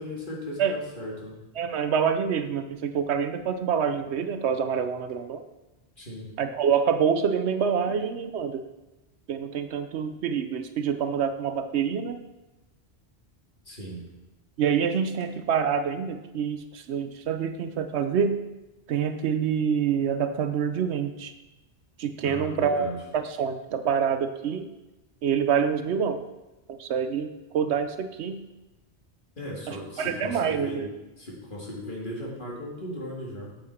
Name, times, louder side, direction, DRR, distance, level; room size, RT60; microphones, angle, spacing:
voice 1, 0.0-1.3 6.0-6.3 7.9-8.0 13.7-14.0 22.2-23.0 29.4-30.8 31.2-33.5, equal, 50° left, -3 dB, 2.1 m, -37 dB
voice 2, 1.6-5.4 6.4-8.6 9.3-12.2 14.6-18.4 18.9-21.3 22.0-24.7 25.2-26.2 26.7-28.4 29.7-30.9, right 7 dB, 75° right, 9 dB, 0.9 m, -26 dB
8.6 x 7.9 x 4.3 m, 1.0 s
omnidirectional pair, 1.1 m